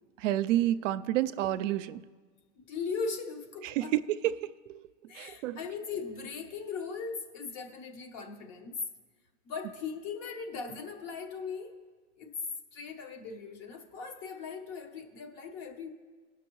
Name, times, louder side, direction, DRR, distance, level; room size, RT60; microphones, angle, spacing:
voice 1, 0.2-2.0 3.6-4.7 5.2-5.6, right 13 dB, 80° right, 13 dB, 0.5 m, -29 dB
voice 2, 2.6-3.9 5.1-8.8 9.4-11.7 12.2-12.3 12.7-15.9, left 5 dB, 45° left, 5 dB, 1.1 m, -39 dB
17.5 x 5.9 x 3.0 m, 1.5 s
supercardioid pair, 135°, 37 cm